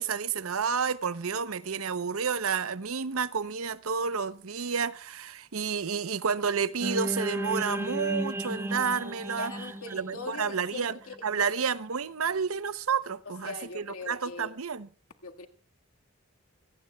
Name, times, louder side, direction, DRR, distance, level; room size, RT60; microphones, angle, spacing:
voice 1, 0.0-9.5 9.9-14.9, right 6 dB, 80° right, 0.8 m, -30 dB
sound 1, 6.8-11.1, right 1 dB, 10° right, 0.6 m, -34 dB
voice 2, 9.4-11.5 13.4-14.5 15.2-15.5, left 4 dB, 80° left, 1.9 m, -41 dB
25.5 x 18.0 x 2.4 m
head